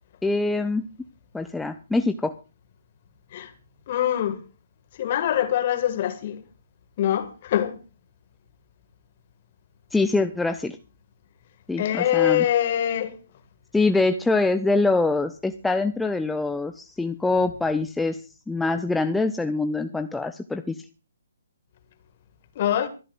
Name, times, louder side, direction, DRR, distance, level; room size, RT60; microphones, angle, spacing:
voice 1, 0.2-0.9 1.3-2.3 9.9-10.8 11.7-12.4 13.7-18.2 18.5-20.8, left 3 dB, 5° left, 0.6 m, -24 dB
voice 2, 3.9-4.4 5.0-6.4 7.0-7.7 11.8-13.2 22.6-22.9, left 11 dB, 40° left, 1.9 m, -23 dB
25.0 x 12.0 x 2.5 m
figure-of-eight pair, 130°, 0 cm